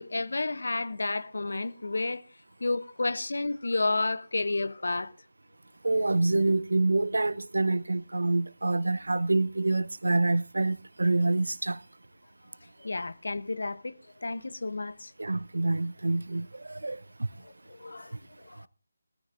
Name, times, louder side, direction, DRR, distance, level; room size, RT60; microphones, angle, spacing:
voice 1, 0.0-2.2 2.6-5.1 12.8-13.9 14.2-15.1 17.4-18.2 18.4-18.7, left 3 dB, 65° left, 0.9 m, -31 dB
voice 2, 5.8-11.8 15.2-17.3, right 2 dB, 75° right, 0.7 m, -27 dB
19.5 x 14.0 x 2.6 m
figure-of-eight pair, 155°, 0 cm